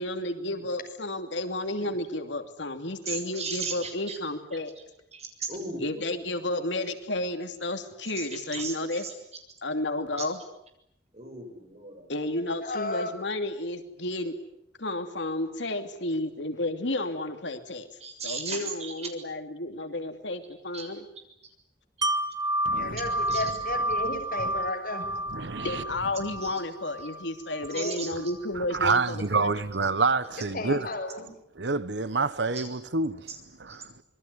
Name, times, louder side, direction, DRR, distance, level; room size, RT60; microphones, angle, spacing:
voice 1, 0.0-4.7 5.8-9.0 9.6-10.4 12.1-14.4 14.8-17.9 18.2-21.0 25.6-29.5, left 2 dB, 85° left, 2.8 m, -32 dB
voice 2, 1.8-2.1 3.1-4.2 4.5-4.8 5.1-6.2 8.2-9.1 10.2-10.3 11.1-12.1 18.0-19.1 20.7-20.9 23.3-23.4 26.4-26.6 27.7-28.1 32.5-32.7 33.3-33.4 33.7-33.8, right 4 dB, 40° right, 7.0 m, -37 dB
voice 3, 12.6-13.1 22.7-25.1 27.7-28.0 30.5-31.3, left 2 dB, 55° left, 6.3 m, -33 dB
Wind chime, 22.0-27.8 28.2-28.3, right 1 dB, 25° right, 1.2 m, -31 dB
voice 4, 22.6-23.0 25.3-25.8 28.5-30.9 31.6-33.3 33.6-33.9, right 4 dB, 70° right, 1.2 m, -27 dB
27.0 x 22.5 x 9.8 m
head